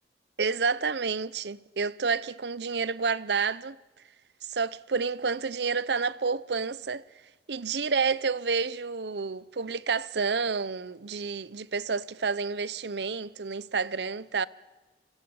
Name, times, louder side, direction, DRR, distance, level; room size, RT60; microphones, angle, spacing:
voice 1, 0.4-3.8 4.5-7.0 7.5-14.5, right 5 dB, 75° right, 0.7 m, -29 dB
30.0 x 22.0 x 7.1 m
head